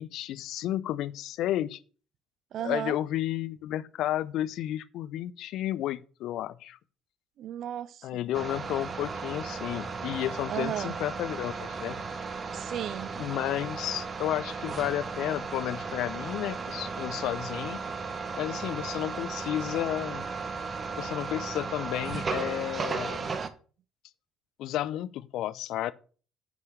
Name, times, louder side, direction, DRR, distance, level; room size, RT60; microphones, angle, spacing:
voice 1, 0.0-1.8 2.6-6.8 8.0-12.0 13.2-17.8 18.4-20.3 21.0-23.3 24.6-25.9, left 13 dB, 60° left, 0.6 m, -32 dB
voice 2, 2.5-3.0 7.4-8.1 10.5-10.9 12.5-13.1, right 10 dB, 55° right, 0.4 m, -34 dB
sound 1, 8.3-23.5, right 4 dB, 35° right, 1.1 m, -35 dB
9.9 x 5.4 x 6.4 m
figure-of-eight pair, 50°, 0 cm